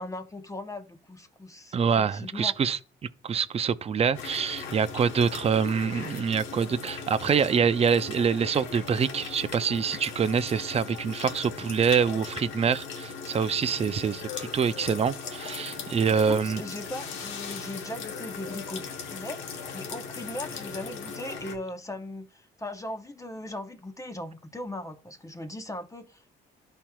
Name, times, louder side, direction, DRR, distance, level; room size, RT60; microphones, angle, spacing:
voice 1, 0.0-2.5 15.8-18.8 19.1-26.4, left 1 dB, 15° left, 0.8 m, -39 dB
voice 2, 1.7-2.8 3.2-16.6, right 6 dB, 30° right, 0.5 m, -25 dB
sound 1, 4.1-21.6, left 5 dB, 80° left, 1.1 m, -38 dB
13.0 x 4.4 x 2.3 m
cardioid pair, 90°, 20 cm